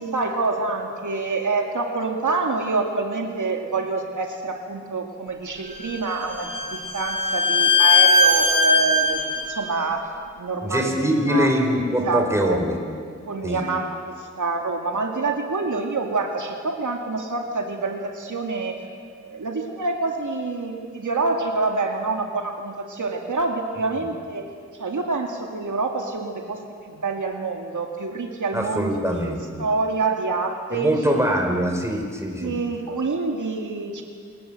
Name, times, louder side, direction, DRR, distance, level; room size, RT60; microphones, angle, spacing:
voice 1, 0.0-10.1 10.4-10.9 11.3-11.6 12.0-12.6 13.3-18.8 19.2-24.5 24.8-26.6 26.9-31.0 32.4-34.0, right 3 dB, 75° right, 2 dB, 2.3 m, -27 dB
Bowed string instrument, 5.7-9.5, left 2 dB, 25° right, 4.7 m, -19 dB
voice 2, 10.6-12.7 13.4-13.6 28.5-29.4 30.7-32.6, equal, 10° right, 2 dB, 5.3 m, -23 dB
27.5 x 20.0 x 7.8 m, 2.1 s
wide cardioid pair, 65°, 30 cm